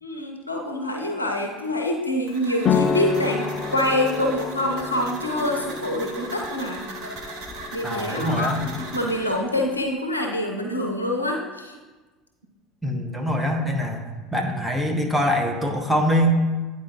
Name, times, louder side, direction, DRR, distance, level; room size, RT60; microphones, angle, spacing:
voice 1, 0.0-6.9 7.7-8.5 8.9-11.7, left 1 dB, 85° left, 2 dB, 0.6 m, -26 dB
sound 1, 2.3-9.4, right 3 dB, 60° right, 0.9 m, -39 dB
sound 2, 2.6-9.9, left 5 dB, 40° left, 0.3 m, -30 dB
voice 2, 7.8-8.9 12.8-14.0 14.3-16.4, equal, 5° right, 1 dB, 0.9 m, -23 dB
9.1 x 4.1 x 2.9 m, 1.3 s
figure-of-eight pair, 70°, 0 cm